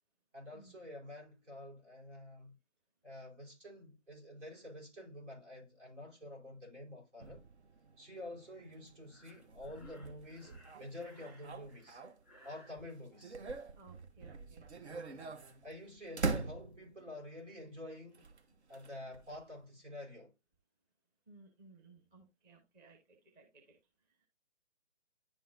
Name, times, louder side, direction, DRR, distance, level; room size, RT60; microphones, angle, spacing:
voice 1, 0.3-2.6 3.0-7.4 8.0-12.0 12.4-13.4 15.6-18.2 18.7-20.3, left 1 dB, 80° right, 4.1 m, -49 dB
sound 1, 7.2-12.5 12.9-17.1 18.1-19.6, right 4 dB, 65° right, 1.2 m, -44 dB
Breathing, 9.1-12.8, equal, ahead, 1.3 m, -62 dB
voice 2, 13.8-14.7 21.3-23.8 24.2-24.3, right 3 dB, 15° right, 1.0 m, -60 dB
10.5 x 3.8 x 2.5 m
figure-of-eight pair, 150°, 36 cm